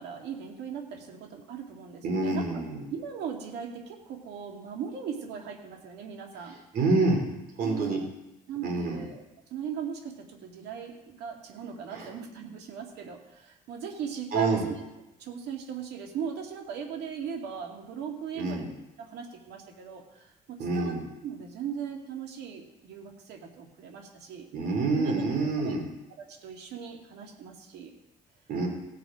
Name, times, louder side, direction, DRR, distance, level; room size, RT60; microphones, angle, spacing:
voice 1, 0.0-2.6 2.9-6.5 7.6-7.9 8.5-9.2 9.5-14.8 15.2-18.7 19.0-21.0 21.2-24.5 25.0-25.7 26.2-27.9, right 7 dB, 80° right, 2 dB, 2.2 m, -38 dB
voice 2, 2.0-2.8 6.7-7.2 7.6-8.0 8.6-9.1 11.9-12.1 14.3-14.6 18.3-18.7 20.6-21.0 24.5-25.8 28.5-28.7, right 3 dB, 60° right, 1 dB, 3.4 m, -27 dB
17.0 x 6.9 x 5.1 m, 0.94 s
cardioid pair, 110°, 17 cm